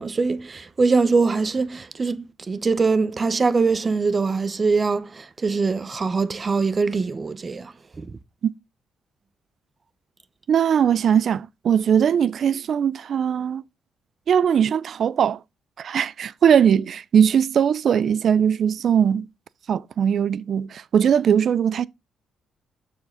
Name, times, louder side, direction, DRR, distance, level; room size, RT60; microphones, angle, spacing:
voice 1, 0.0-8.2, right 4 dB, 30° right, 0.9 m, -23 dB
voice 2, 10.5-13.6 14.3-15.4 15.8-19.3 19.7-21.9, right 8 dB, 60° right, 0.5 m, -20 dB
7.3 x 6.4 x 3.8 m
cardioid pair, 90°, 0 cm